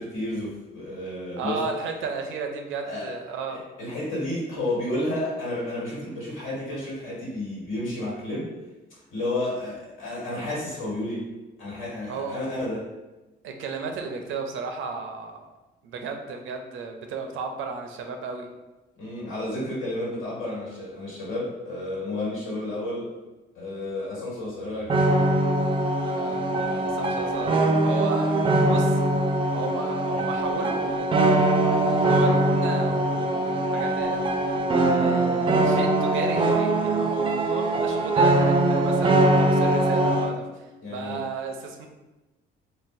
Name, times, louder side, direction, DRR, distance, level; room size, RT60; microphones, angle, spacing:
voice 1, 0.0-1.6 2.8-3.1 3.5-8.5 9.1-11.3 11.6-12.8 19.0-23.1 23.5-25.1 40.8-41.2, left 1 dB, 85° left, -6 dB, 1.5 m, -31 dB
voice 2, 1.4-3.6 12.1-12.4 13.4-15.5 15.8-18.5 26.0-28.3 28.6-29.0 29.5-34.2 34.8-41.9, right 4 dB, 80° right, 4 dB, 0.5 m, -34 dB
sound 1, 24.9-40.3, right 2 dB, 25° right, 0.4 m, -22 dB
3.9 x 2.1 x 2.6 m, 1.1 s
cardioid pair, 90°, 20 cm